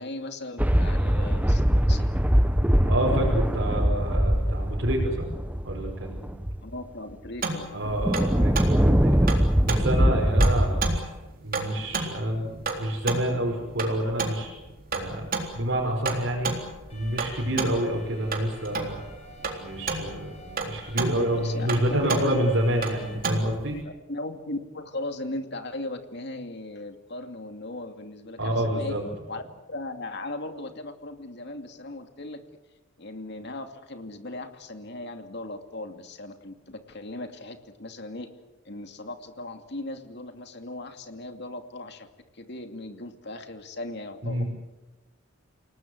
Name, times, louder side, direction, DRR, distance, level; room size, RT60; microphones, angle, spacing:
voice 1, 0.0-2.1 6.6-7.8 21.1-22.4 23.8-29.0 29.3-29.4 29.7-32.4 33.0-38.3 38.6-42.1 42.3-44.4, left 2 dB, 60° left, 6 dB, 2.6 m, -38 dB
sound 1, 0.6-6.8 7.3-7.4 7.8-11.0, equal, 10° right, 0.9 m, -22 dB
voice 2, 2.9-5.3 5.6-6.3 7.7-9.3 9.6-10.8 11.4-14.5 14.9-15.3 15.5-16.5 16.9-19.0 19.6-23.8 28.4-29.0 44.2-44.4, right 1 dB, 65° right, -2 dB, 5.4 m, -28 dB
sound 2, 7.4-23.8, right 4 dB, 45° right, 3.8 m, -33 dB
Alarm, 16.9-23.1, equal, 35° left, 7.4 m, -49 dB
29.0 x 18.5 x 8.1 m, 1.1 s
head